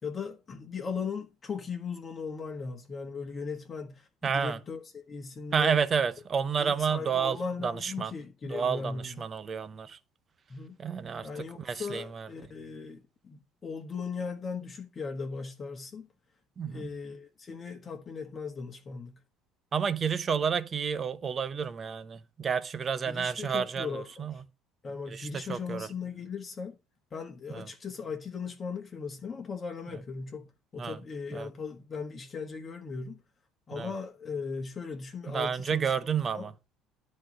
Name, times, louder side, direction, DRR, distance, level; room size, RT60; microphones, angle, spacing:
voice 1, 0.0-5.8 6.6-9.2 10.5-10.8 11.2-16.1 16.6-19.2 23.0-24.4 24.8-26.8 27.1-30.5 30.7-33.2 33.7-35.9 36.3-36.5, left 5 dB, 20° left, 1.4 m, -38 dB
voice 2, 4.2-4.6 5.5-7.4 7.6-8.1 8.5-10.0 10.8-12.3 16.6-16.9 19.7-24.3 25.1-25.9 27.5-27.7 30.8-31.0 31.3-31.5 33.7-33.9 35.3-36.5, right 6 dB, 25° right, 0.7 m, -30 dB
11.5 x 4.2 x 6.2 m
cardioid pair, 155°, 0 cm